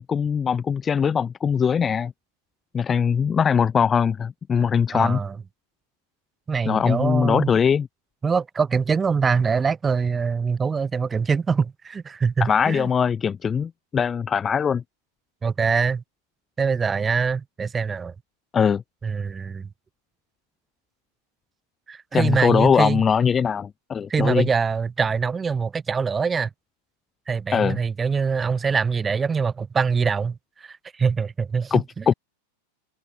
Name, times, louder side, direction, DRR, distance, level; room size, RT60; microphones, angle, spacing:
voice 1, 0.0-2.1 2.7-5.2 6.6-7.9 12.4-14.8 18.5-18.8 22.1-24.5 27.5-27.8 31.7-32.1, left 7 dB, 20° left, 2.7 m, -21 dB
voice 2, 4.9-5.3 6.5-7.5 8.2-12.9 15.4-16.0 16.6-18.1 19.0-19.7 21.9-23.0 24.1-26.5 27.3-32.0, right 5 dB, 15° right, 3.2 m, -24 dB
figure-of-eight pair, 90°, 0 cm